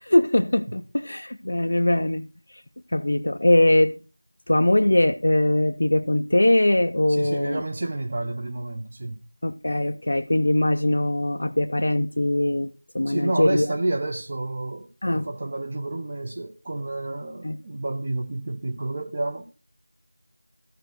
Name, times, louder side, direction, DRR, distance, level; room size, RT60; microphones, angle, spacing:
voice 1, 0.1-2.3 2.9-4.0 4.5-7.6 9.4-13.6 15.0-15.3 17.4-17.6, left 1 dB, 35° left, 0.5 m, -21 dB
voice 2, 7.1-9.2 13.1-19.5, right 2 dB, 15° right, 0.6 m, -30 dB
13.5 x 4.8 x 6.3 m
figure-of-eight pair, 180°, 0 cm